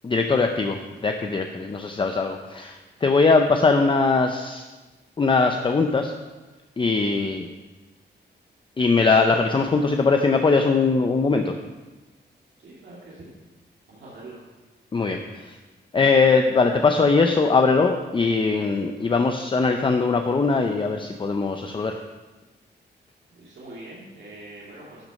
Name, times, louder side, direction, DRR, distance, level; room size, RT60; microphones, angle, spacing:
voice 1, 0.0-4.6 5.2-6.1 6.8-7.5 8.8-11.5 14.9-15.6 15.9-22.0, left 4 dB, 30° left, 5 dB, 0.6 m, -21 dB
voice 2, 12.6-13.3 13.9-14.4 23.3-25.0, right 2 dB, 80° right, -6 dB, 2.3 m, -43 dB
12.0 x 6.0 x 5.3 m, 1.2 s
wide cardioid pair, 115°, 18 cm